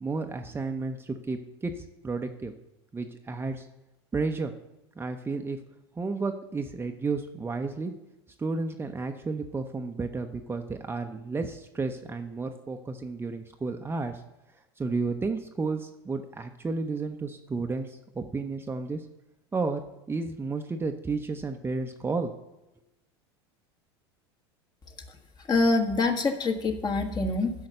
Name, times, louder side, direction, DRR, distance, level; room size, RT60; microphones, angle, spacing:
voice 1, 0.0-2.5 2.9-3.7 4.1-4.5 5.0-5.6 6.0-7.9 8.4-14.2 14.8-19.0 19.5-19.8 20.1-22.3, right 3 dB, 15° right, 5 dB, 0.8 m, -32 dB
voice 2, 25.5-27.5, left 3 dB, 30° left, 4 dB, 1.7 m, -25 dB
10.5 x 5.7 x 6.6 m, 0.98 s
hypercardioid pair, 90°, 14 cm